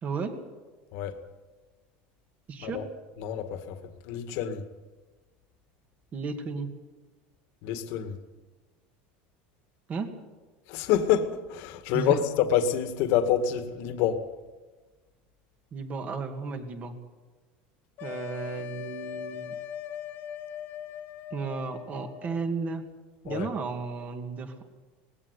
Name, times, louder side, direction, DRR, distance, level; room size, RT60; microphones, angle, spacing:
voice 1, 0.0-0.4 2.5-2.8 6.1-6.7 9.9-10.1 11.9-12.2 15.7-16.9 18.0-19.5 21.3-22.8 23.2-24.6, right 4 dB, 30° right, 2.2 m, -34 dB
voice 2, 3.2-3.8 4.1-4.6 7.6-8.2 10.7-14.3 23.3-23.5, left 9 dB, 60° left, 1.9 m, -27 dB
sound 1, 18.0-22.4, left 10 dB, 40° left, 1.3 m, -40 dB
20.0 x 16.5 x 8.3 m
supercardioid pair, 145°, 5 cm